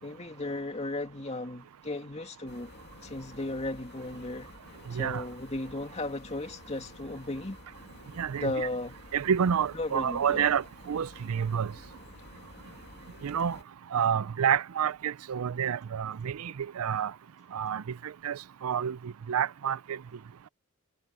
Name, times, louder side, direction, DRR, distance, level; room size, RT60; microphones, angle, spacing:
voice 1, 0.0-2.7 3.0-4.5 4.9-7.6 8.3-9.0 9.7-10.5, left 2 dB, 30° left, 2.5 m, -35 dB
sound 1, 2.5-13.6, left 2 dB, 50° left, 2.4 m, -51 dB
voice 2, 8.2-8.7 9.1-11.7 13.2-13.6 13.9-17.1 17.5-17.8 18.2-19.0 19.3-20.0, right 8 dB, 85° right, 0.4 m, -29 dB
head